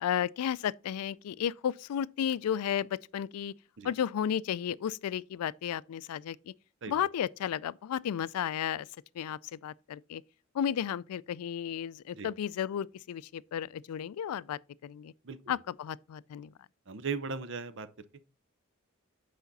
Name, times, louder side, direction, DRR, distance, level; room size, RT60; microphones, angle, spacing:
voice 1, 0.0-3.5 3.8-6.5 6.9-8.9 9.2-10.2 10.5-15.1 15.5-16.5, left 9 dB, 85° left, 0.3 m, -33 dB
voice 2, 16.9-17.9, right 5 dB, 55° right, 0.6 m, -38 dB
8.2 x 5.0 x 4.0 m
head